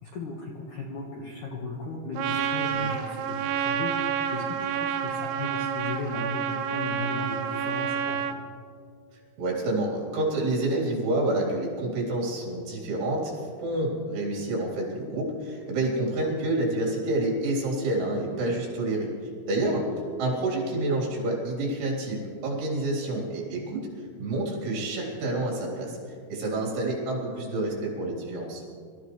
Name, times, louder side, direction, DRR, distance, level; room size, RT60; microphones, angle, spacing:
voice 1, 0.0-8.4 19.6-19.7, left 3 dB, 65° left, -2 dB, 2.0 m, -36 dB
Trumpet, 2.2-8.4, right 8 dB, 90° right, 3.6 m, -29 dB
voice 2, 9.4-19.1 19.5-19.9 20.2-23.9 24.2-26.0 26.3-28.6, right 2 dB, 75° right, -3 dB, 6.0 m, -28 dB
25.5 x 14.0 x 3.2 m, 2.1 s
omnidirectional pair, 5.5 m